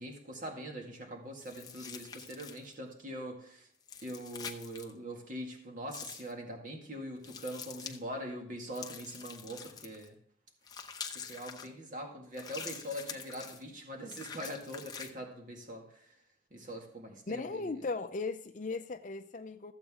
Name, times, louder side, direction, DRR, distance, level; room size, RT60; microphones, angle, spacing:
voice 1, 0.0-3.7 4.0-10.1 11.1-16.0 16.5-17.8, equal, 45° right, 2.0 m, -43 dB
sound 1, 1.4-2.7 3.8-4.9 5.9-6.3 7.2-8.0 8.7-10.1 10.7-11.7 12.3-13.6 14.1-15.1, left 6 dB, 20° left, 0.8 m, -45 dB
voice 2, 17.3-19.7, left 3 dB, 45° left, 0.5 m, -37 dB
14.0 x 8.0 x 3.7 m
head